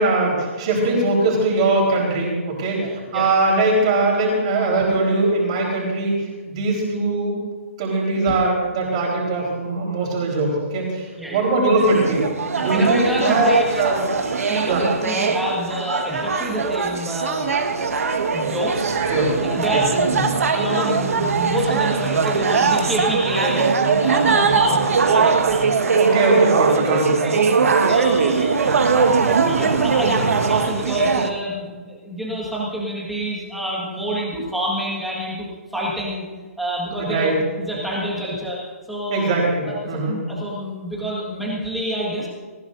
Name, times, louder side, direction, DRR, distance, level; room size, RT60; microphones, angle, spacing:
voice 1, 0.0-6.1 6.5-7.3 7.8-12.2 12.5-13.5 13.8-14.0 14.6-14.8 19.0-19.3 19.7-20.3 26.0-27.1 37.1-37.3 39.1-40.2, right 2 dB, 25° right, -2 dB, 4.2 m, -21 dB
voice 2, 2.7-3.3 8.3-8.4 11.2-11.5 12.5-13.9 14.5-18.0 18.3-20.1 20.4-23.7 24.0-25.7 26.6-28.9 29.2-36.3 36.6-38.6 38.9-39.3 39.6-42.3, equal, ahead, -5 dB, 1.7 m, -28 dB
sound 1, 11.8-31.3, right 5 dB, 70° right, 1.6 m, -20 dB
19.0 x 19.0 x 2.7 m, 1.4 s
hypercardioid pair, 180°, 8 cm